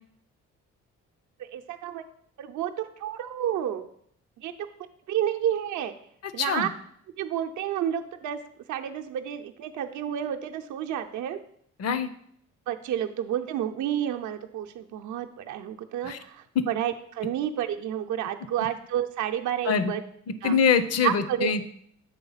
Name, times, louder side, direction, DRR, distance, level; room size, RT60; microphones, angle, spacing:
voice 1, 1.4-2.0 2.4-3.9 4.4-4.5 5.1-5.9 6.3-6.7 7.2-8.4 8.7-11.4 12.7-20.0 20.4-20.5 21.0-21.5, right 10 dB, 75° right, 5 dB, 0.6 m, -30 dB
voice 2, 6.2-6.7 11.8-12.1 16.0-16.2 16.5-16.7 19.6-19.9 20.3-21.7, left 6 dB, 55° left, 13 dB, 0.7 m, -24 dB
7.5 x 3.5 x 5.6 m, 0.67 s
cardioid pair, 90°, 30 cm